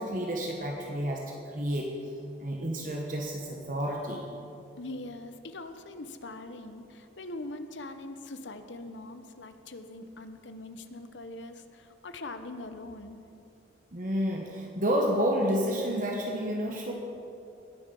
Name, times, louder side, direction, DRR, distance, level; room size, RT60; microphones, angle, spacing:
voice 1, 0.0-2.1 2.4-4.3 13.9-16.9, equal, 45° right, -1 dB, 1.2 m, -30 dB
voice 2, 4.8-13.3, left 2 dB, 80° left, 9 dB, 0.9 m, -42 dB
21.0 x 8.3 x 5.4 m, 2.7 s
head